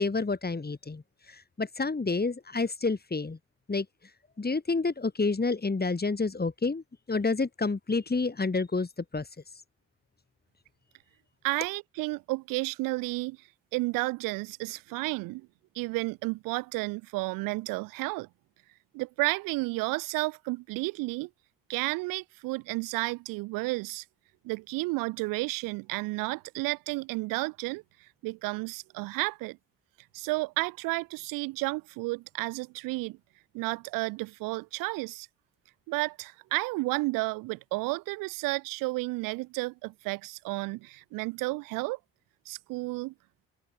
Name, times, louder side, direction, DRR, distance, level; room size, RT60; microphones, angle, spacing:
voice 1, 0.0-3.4 3.7-3.9 4.4-9.3, left 3 dB, 30° left, 5.5 m, -29 dB
voice 2, 11.4-13.4 13.7-15.5 15.7-18.3 18.9-21.3 21.7-24.0 24.4-29.6 30.1-33.2 33.5-35.3 35.9-42.0 42.4-43.1, right 24 dB, 90° right, 6.3 m, -32 dB
supercardioid pair, 50°, 32 cm